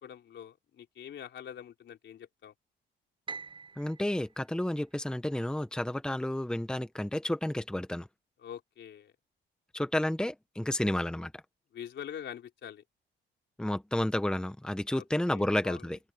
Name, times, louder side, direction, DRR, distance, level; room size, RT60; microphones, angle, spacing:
voice 1, 0.0-2.5 8.4-9.1 11.7-12.8 14.9-15.9, left 9 dB, 65° left, 3.9 m, -45 dB
Piano, 3.3-5.5, right 4 dB, 25° right, 7.1 m, -46 dB
voice 2, 3.8-8.1 9.7-11.3 13.6-16.0, left 1 dB, 5° left, 1.2 m, -31 dB
open air
cardioid pair, 90°, 20 cm